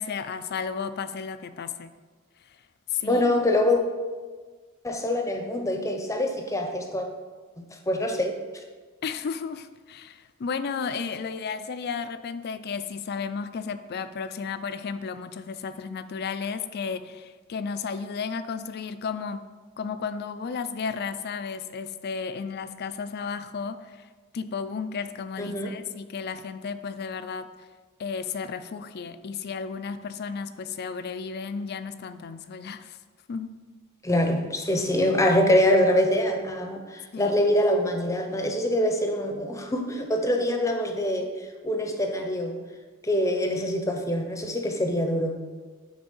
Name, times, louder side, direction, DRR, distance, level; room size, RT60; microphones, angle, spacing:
voice 1, 0.0-1.9 2.5-2.6 2.9-3.2 9.0-19.4 19.8-24.1 24.3-27.7 28.0-33.0 33.3-33.6 37.1-37.3, left 5 dB, 50° left, 12 dB, 0.4 m, -33 dB
voice 2, 3.0-3.8 4.8-7.1 7.9-8.4 25.4-25.8 34.0-42.6 43.0-45.5, left 1 dB, 15° left, 4 dB, 0.7 m, -24 dB
8.9 x 3.4 x 5.4 m, 1.4 s
head